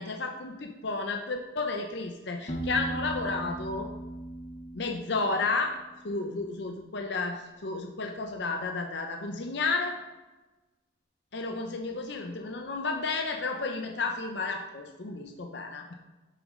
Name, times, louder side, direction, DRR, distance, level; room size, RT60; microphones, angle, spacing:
voice 1, 0.0-3.9 4.7-5.7 6.0-10.0 11.3-15.9, left 3 dB, 60° left, 4 dB, 0.7 m, -32 dB
Piano, 2.5-6.2, right 1 dB, 35° left, 1.0 m, -38 dB
11.5 x 6.7 x 3.8 m, 1.2 s
head